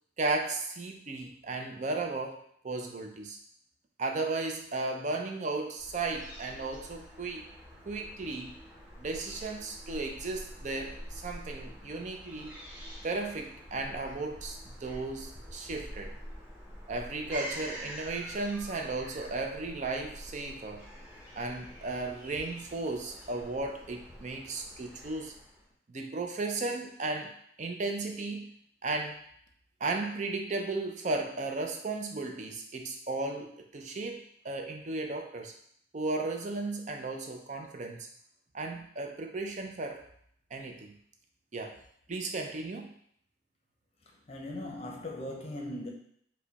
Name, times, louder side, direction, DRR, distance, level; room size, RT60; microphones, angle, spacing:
voice 1, 0.2-3.4 4.0-7.5 7.8-8.6 9.0-12.6 13.0-16.1 16.9-20.9 21.4-25.3 25.9-28.5 28.8-29.2 29.8-35.5 35.9-38.1 38.5-40.1 40.5-40.9 41.5-41.8 42.1-42.9, right 3 dB, 40° right, 3 dB, 0.5 m, -35 dB
Fowl / Gull seagull, 5.8-25.7, equal, 5° right, 0.8 m, -46 dB
voice 2, 44.0-45.9, left 1 dB, 35° left, 0 dB, 0.7 m, -39 dB
4.7 x 2.2 x 4.0 m, 0.66 s
head